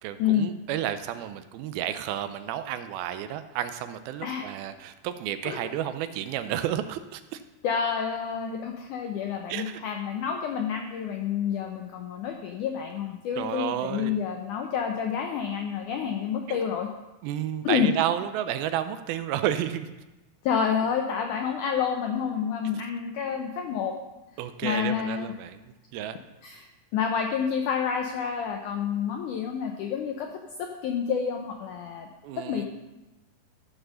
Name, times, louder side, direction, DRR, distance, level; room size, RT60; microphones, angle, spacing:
voice 1, 0.0-7.4 9.5-9.8 13.4-14.2 16.5-16.6 17.2-19.9 24.4-25.6 25.9-26.2 32.2-32.7, right 11 dB, 80° right, 11 dB, 2.3 m, -31 dB
voice 2, 7.6-16.9 17.6-17.9 20.4-23.9 24.6-25.3 26.4-26.7 26.9-30.3 30.6-32.1 32.3-32.7, left 7 dB, 85° left, 3 dB, 1.8 m, -29 dB
14.0 x 4.9 x 6.2 m, 1.1 s
omnidirectional pair, 4.5 m